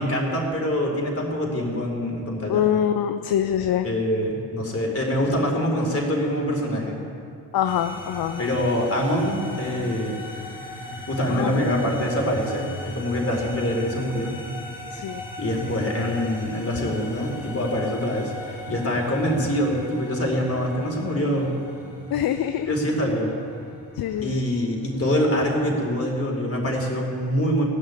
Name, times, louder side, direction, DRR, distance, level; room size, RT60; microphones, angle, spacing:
voice 1, 0.0-2.6 3.8-7.0 8.4-10.2 11.1-14.3 15.4-21.5 22.7-23.3 24.2-27.6, equal, 30° left, -1 dB, 4.5 m, -25 dB
voice 2, 2.5-3.9 7.5-8.5 11.3-11.7 14.9-15.2 22.1-22.7 24.0-24.4, left 10 dB, 55° left, 8 dB, 0.8 m, -24 dB
sound 1, 7.6-25.6, left 1 dB, 80° left, 2.9 m, -39 dB
17.5 x 6.6 x 9.8 m, 2.4 s
hypercardioid pair, 45°, 45 cm